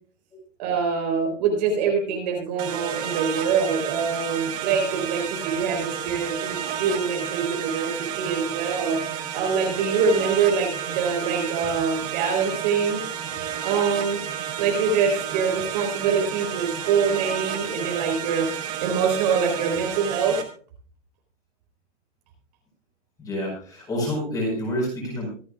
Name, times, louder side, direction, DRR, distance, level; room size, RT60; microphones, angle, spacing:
voice 1, 0.6-9.0 9.3-13.0 13.6-14.2 14.6-18.5 18.8-20.4, right 6 dB, 35° right, 1 dB, 3.8 m, -24 dB
sound 1, 2.6-20.4, right 9 dB, 10° right, 0.7 m, -31 dB
voice 2, 23.2-25.3, equal, 10° left, -2 dB, 4.9 m, -28 dB
25.0 x 9.0 x 2.3 m, 0.43 s
hypercardioid pair, 170°, 37 cm